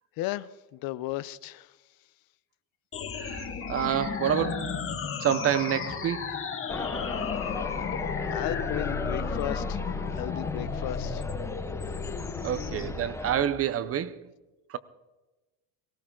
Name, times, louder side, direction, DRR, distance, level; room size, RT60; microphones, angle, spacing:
voice 1, 0.2-1.8 8.3-9.8 10.1-11.2, left 16 dB, 60° left, 0.6 m, -35 dB
sound 1, 2.9-12.9, left 6 dB, 30° left, 1.6 m, -34 dB
voice 2, 3.1-4.8 5.2-6.4 12.4-14.3 14.7-14.8, right 10 dB, 35° right, 0.6 m, -28 dB
sound 2, 6.7-13.4, left 3 dB, 5° left, 0.7 m, -35 dB
18.0 x 17.0 x 3.8 m
cardioid pair, 140°, 40 cm